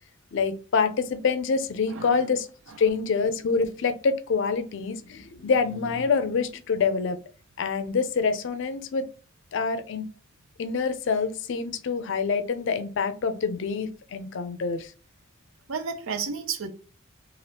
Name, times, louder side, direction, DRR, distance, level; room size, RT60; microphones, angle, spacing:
voice 1, 0.3-2.5 2.8-7.2 7.6-9.0 9.5-10.0 10.6-14.9, left 5 dB, 65° left, 0.4 m, -26 dB
voice 2, 1.9-2.2 15.7-16.7, right 5 dB, 85° right, 0.6 m, -31 dB
3.3 x 2.4 x 2.8 m
head